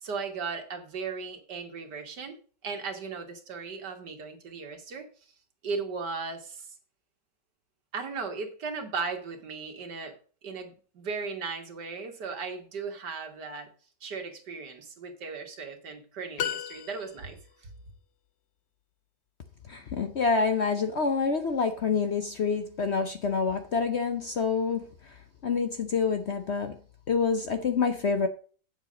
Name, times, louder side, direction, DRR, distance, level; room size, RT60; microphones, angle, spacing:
voice 1, 0.0-2.4 2.6-5.1 5.6-6.7 7.9-10.1 10.4-13.7 14.0-17.7, right 4 dB, 70° right, 2.3 m, -37 dB
sound 1, 16.4-17.5, left 10 dB, 70° left, 0.6 m, -34 dB
voice 2, 19.7-24.9 25.4-26.7 27.1-28.3, left 5 dB, 50° left, 0.9 m, -27 dB
8.5 x 7.3 x 5.1 m
omnidirectional pair, 1.9 m